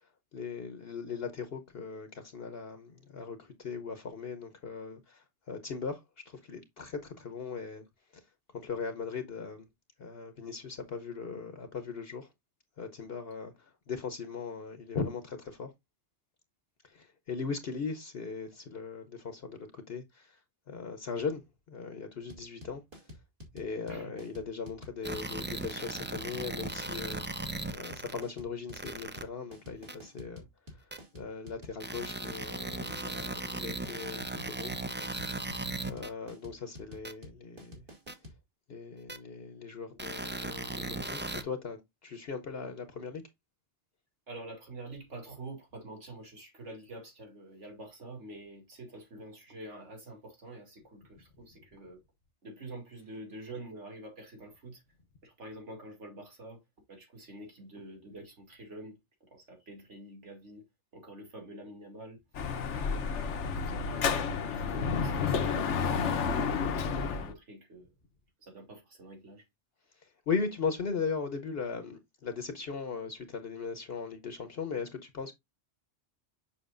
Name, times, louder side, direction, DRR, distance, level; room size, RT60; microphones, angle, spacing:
voice 1, 0.0-7.9 8.1-8.2 8.5-9.7 10.0-12.3 12.8-15.7 16.8-20.4 20.7-21.4 21.7-22.8 23.5-27.3 27.7-34.7 35.8-37.8 38.7-43.2 70.0-75.3, left 5 dB, 60° left, 1.1 m, -39 dB
sound 1, 22.3-38.4, left 1 dB, 50° right, 2.3 m, -49 dB
sound 2, 25.0-28.2 28.7-29.2 29.9-30.0 30.9-31.0 31.8-36.1 37.0-37.1 38.1-38.2 39.1-39.2 40.0-41.4, right 2 dB, 15° right, 0.3 m, -37 dB
voice 2, 44.3-52.0 52.4-54.8 55.2-56.6 56.9-60.7 60.9-62.2 62.7-66.8 67.1-67.9 68.4-69.5, right 1 dB, 90° right, 2.7 m, -47 dB
Dog / Motorcycle, 62.3-67.3, left 5 dB, 80° left, 1.1 m, -30 dB
7.0 x 6.0 x 2.5 m
omnidirectional pair, 1.2 m